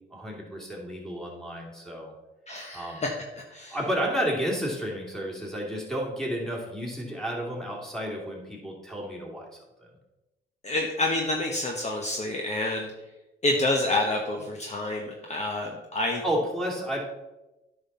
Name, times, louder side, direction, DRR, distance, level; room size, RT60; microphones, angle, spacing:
voice 1, 0.1-2.1 2.7-3.0 3.6-9.5 9.8-9.9 16.2-17.0, equal, ahead, -3 dB, 2.8 m, -31 dB
voice 2, 2.5-3.8 10.6-12.9 13.4-16.2, left 2 dB, 35° left, 1 dB, 1.1 m, -28 dB
9.6 x 5.8 x 4.3 m, 1.0 s
cardioid pair, 90°, 20 cm